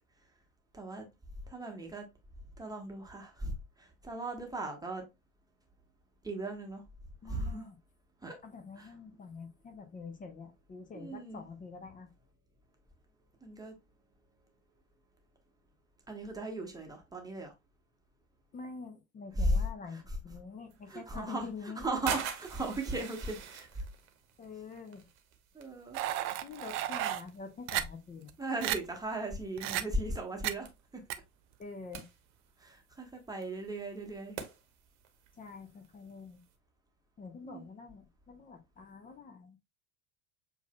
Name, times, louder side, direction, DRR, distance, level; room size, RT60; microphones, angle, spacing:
voice 1, 0.7-1.1 1.5-2.0 2.6-5.0 6.2-6.8 7.2-7.7 8.2-8.4 8.8-8.9 10.9-11.4 13.4-13.8 16.1-17.5 19.3-19.6 19.9-20.2 20.9-23.8 25.5-26.0 28.4-30.7 30.9-31.0 32.6-34.4 37.4-37.7, right 1 dB, 10° right, 1.1 m, -37 dB
voice 2, 7.2-7.8 8.4-12.1 18.5-22.0 24.4-25.1 26.4-28.3 31.6-32.1 35.4-36.4 37.2-39.6, left 4 dB, 20° left, 0.8 m, -46 dB
sound 1, 20.7-36.5, right 8 dB, 60° right, 1.1 m, -47 dB
sound 2, 25.9-27.2 27.7-27.8 28.3-28.4 28.6-28.8 29.6-29.8 30.4-30.5 31.1-31.2, right 13 dB, 35° right, 0.4 m, -33 dB
7.1 x 2.7 x 2.2 m
figure-of-eight pair, 75°, 40 cm